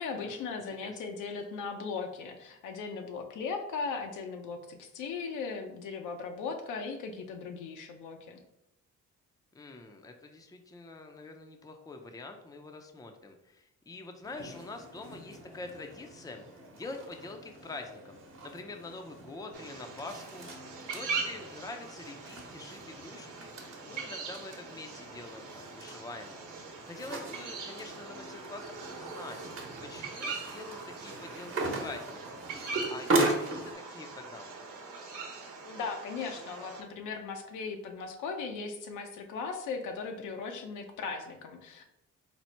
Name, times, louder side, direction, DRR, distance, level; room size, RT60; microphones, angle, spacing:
voice 1, 0.0-8.4 35.6-41.8, left 4 dB, 85° left, 4 dB, 0.7 m, -38 dB
voice 2, 9.5-16.5 16.7-20.5 20.9-26.4 26.8-29.4 29.8-31.5 31.8-32.4 32.9-34.6, left 3 dB, 10° left, 5 dB, 0.5 m, -45 dB
sound 1, 14.2-33.7, right 2 dB, 45° right, 1.0 m, -38 dB
sound 2, 19.5-36.8, right 4 dB, 85° right, 0.9 m, -42 dB
4.2 x 2.0 x 4.3 m, 0.87 s
cardioid pair, 90°, 30 cm